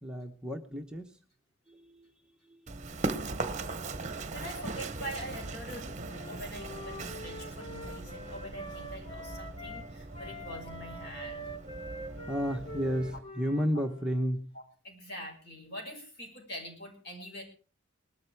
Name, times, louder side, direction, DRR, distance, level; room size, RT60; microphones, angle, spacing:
voice 1, 0.0-1.2 1.7-2.1 2.5-2.6 12.3-14.5, equal, 5° right, 2 dB, 1.0 m, -32 dB
Run, 2.7-13.2, right 3 dB, 35° right, 1.0 m, -39 dB
voice 2, 4.0-11.5 14.8-17.4, equal, 50° left, 2 dB, 6.4 m, -44 dB
Wind instrument woodwind instrument, 6.1-9.9 10.1-14.2, equal, 25° left, 1.8 m, -45 dB
20.0 x 13.0 x 4.7 m, 0.41 s
head